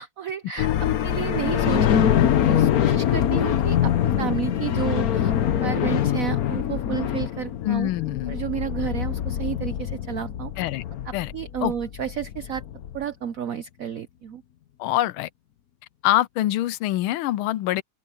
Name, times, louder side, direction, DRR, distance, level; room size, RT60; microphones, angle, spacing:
voice 1, 0.0-2.0 2.4-5.3 5.6-7.9 8.3-10.5 11.1-12.6 12.9-14.4, right 9 dB, 80° right, 0.7 m, -31 dB
sound 1, 0.6-13.0, left 10 dB, 60° left, 1.1 m, -24 dB
voice 2, 7.6-8.4 10.6-10.8 11.1-11.3 11.6-11.7 14.8-15.3 16.0-17.8, left 15 dB, 90° left, 1.5 m, -24 dB
open air
omnidirectional pair, 2.3 m